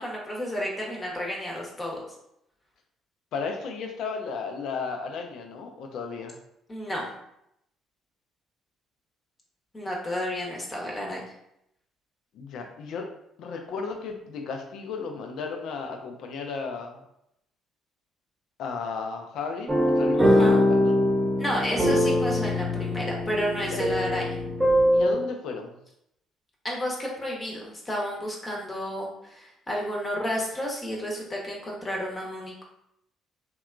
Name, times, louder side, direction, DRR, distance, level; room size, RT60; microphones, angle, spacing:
voice 1, 0.0-2.0 6.7-7.1 9.7-11.3 20.2-20.6 21.4-24.4 26.6-32.6, equal, 25° left, -2 dB, 0.8 m, -31 dB
voice 2, 3.3-6.4 12.3-13.1 13.4-17.0 18.6-20.9 23.6-23.8 24.9-25.8, left 4 dB, 65° left, 3 dB, 0.4 m, -34 dB
sound 1, 19.7-25.1, left 1 dB, 20° right, 0.8 m, -22 dB
2.7 x 2.2 x 2.4 m, 0.78 s
hypercardioid pair, 50°, 0 cm